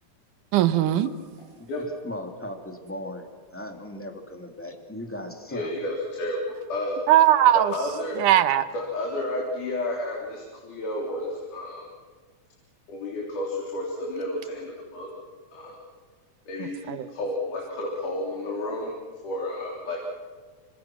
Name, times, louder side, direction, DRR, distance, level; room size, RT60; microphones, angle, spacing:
voice 1, 0.5-1.1 7.1-7.7 8.2-8.7 16.6-17.1, right 12 dB, 85° right, 12 dB, 2.5 m, -19 dB
voice 2, 1.6-5.7, left 1 dB, 5° left, 3 dB, 2.2 m, -38 dB
voice 3, 5.5-7.0 7.7-8.2 8.7-11.8 12.9-15.1 15.5-15.8 16.5-18.9 19.2-20.0, left 1 dB, 80° left, -2 dB, 4.9 m, -31 dB
27.0 x 26.5 x 6.2 m, 1.5 s
omnidirectional pair, 3.5 m